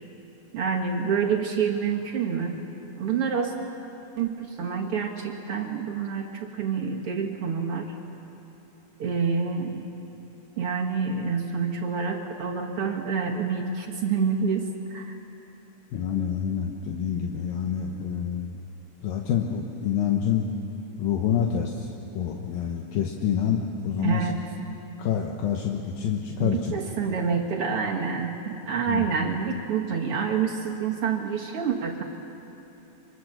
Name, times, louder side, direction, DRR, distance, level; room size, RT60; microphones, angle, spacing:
voice 1, 0.5-2.6 3.0-3.5 4.2-7.9 9.0-9.9 10.6-15.1 24.0-24.4 26.4-32.0, right 6 dB, 50° right, 0 dB, 1.9 m, -27 dB
voice 2, 15.9-18.6 19.0-20.5 21.0-24.3 25.0-26.7 28.9-29.1, left 8 dB, 80° left, 1 dB, 2.8 m, -27 dB
25.0 x 24.0 x 6.6 m, 3.0 s
omnidirectional pair, 4.1 m